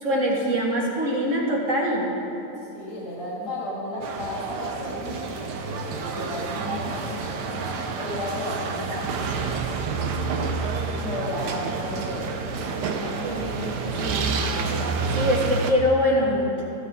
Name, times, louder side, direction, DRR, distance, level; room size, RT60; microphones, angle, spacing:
voice 1, 0.0-2.1 13.2-13.9 15.2-16.5, equal, 50° right, -3 dB, 2.2 m, -23 dB
voice 2, 2.7-9.6 11.0-14.5, left 1 dB, 70° left, -7 dB, 3.6 m, -34 dB
sound 1, 4.0-15.7, right 4 dB, 80° right, 1.4 m, -29 dB
15.0 x 13.5 x 3.6 m, 3.0 s
omnidirectional pair, 1.8 m